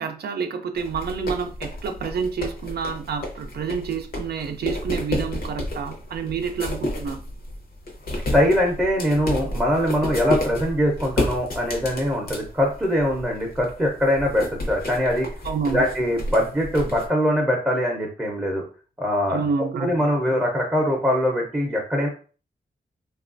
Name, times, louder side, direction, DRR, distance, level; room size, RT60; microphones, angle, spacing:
voice 1, 0.0-7.2 15.4-15.9 19.3-19.9, right 6 dB, 80° right, 6 dB, 0.4 m, -28 dB
sound 1, 0.8-17.1, left 1 dB, 65° left, 0.8 m, -31 dB
voice 2, 8.3-15.3 15.7-18.6 19.0-19.5 19.8-22.1, equal, 10° right, -2 dB, 0.6 m, -22 dB
3.1 x 2.3 x 2.5 m, 0.38 s
wide cardioid pair, 150°, 16 cm